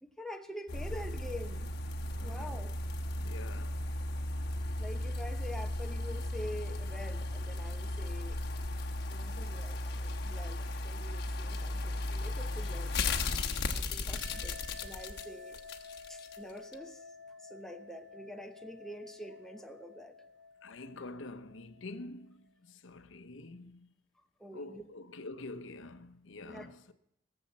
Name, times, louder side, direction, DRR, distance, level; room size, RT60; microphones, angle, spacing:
voice 1, 0.0-1.7 2.2-2.7 4.8-8.4 9.1-15.6 16.1-17.0 17.4-20.3 24.2-24.8 26.4-26.7, equal, ahead, 0.8 m, -46 dB
sound 1, 0.7-16.4 16.7-16.8, left 2 dB, 60° left, 1.1 m, -36 dB
voice 2, 2.1-2.5 3.2-3.9 20.6-23.9 24.5-26.9, left 2 dB, 80° left, 0.8 m, -46 dB
sound 2, 14.1-22.3, left 3 dB, 65° right, 1.3 m, -51 dB
17.5 x 7.1 x 7.4 m
head